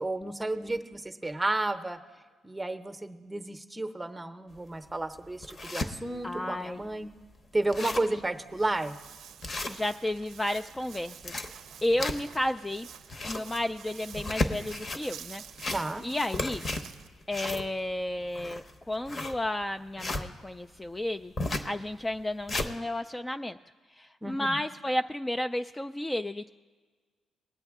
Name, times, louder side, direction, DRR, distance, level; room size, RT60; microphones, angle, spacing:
voice 1, 0.0-2.0 2.4-7.1 7.5-8.9 15.7-16.1 24.2-24.6, right 2 dB, 15° right, 8 dB, 0.7 m, -32 dB
sound 1, 4.6-4.7 5.2-5.9 6.5-6.6 6.8-6.9 7.3-7.4 7.6-8.2 8.6-8.8 9.4-10.2 11.0-12.5 12.9-13.5 14.1-15.0 15.5-16.1 16.3-20.3 21.4-21.7 22.2-22.7, left 2 dB, 40° left, 0.9 m, -33 dB
voice 2, 6.2-6.9 9.7-11.3 11.8-12.9 13.2-15.4 16.0-16.7 17.3-21.3 21.6-23.6 24.0-26.5, left 1 dB, 15° left, 8 dB, 0.3 m, -32 dB
Walk footsteps, 8.3-17.1, right 9 dB, 75° right, 0.5 m, -49 dB
19.5 x 8.1 x 3.6 m, 1.5 s
cardioid pair, 85°, 0 cm